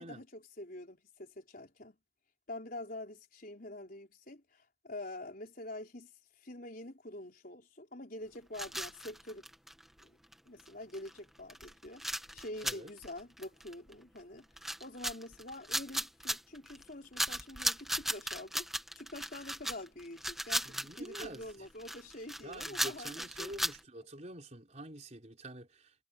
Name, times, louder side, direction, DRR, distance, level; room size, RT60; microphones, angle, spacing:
voice 1, 0.0-2.0 2.5-6.1 6.4-9.4 10.0-10.2 10.4-12.0 12.3-14.5 14.8-18.7 18.9-23.6, left 1 dB, 45° left, 4.6 m, -46 dB
sound 1, 8.5-10.0 10.3-10.4 10.6-10.7 10.9-11.2 11.5-14.2 14.6-16.8 17.2-23.8, equal, ahead, 1.7 m, -37 dB
voice 2, 20.6-21.4 22.4-25.9, right 1 dB, 35° right, 4.4 m, -47 dB
head